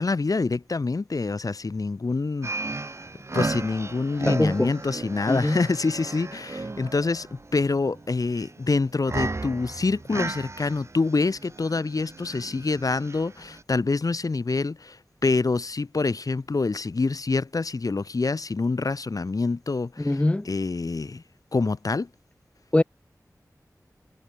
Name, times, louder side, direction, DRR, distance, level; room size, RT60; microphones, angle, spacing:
voice 1, 0.0-2.9 3.3-21.2 21.5-22.1, left 3 dB, 65° left, 7.0 m, -26 dB
sound 1, 2.4-13.6, right 3 dB, 45° right, 2.5 m, -35 dB
voice 2, 4.3-4.7 5.3-5.6 20.0-20.5 22.7-22.8, left 1 dB, 20° left, 0.5 m, -22 dB
wide cardioid pair, 75°, 6 cm